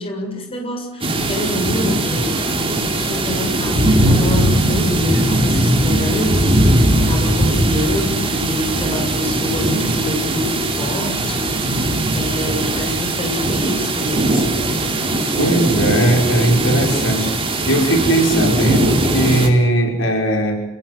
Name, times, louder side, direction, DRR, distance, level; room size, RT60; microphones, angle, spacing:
voice 1, 0.0-2.4 2.7-6.7 7.0-14.8, left 1 dB, 25° left, 2 dB, 7.0 m, -26 dB
sound 1, 1.0-19.5, right 1 dB, 25° right, 4.4 m, -19 dB
voice 2, 15.4-17.3 17.7-20.6, right 1 dB, 65° left, 2 dB, 6.2 m, -18 dB
30.0 x 19.0 x 8.0 m, 1.0 s
head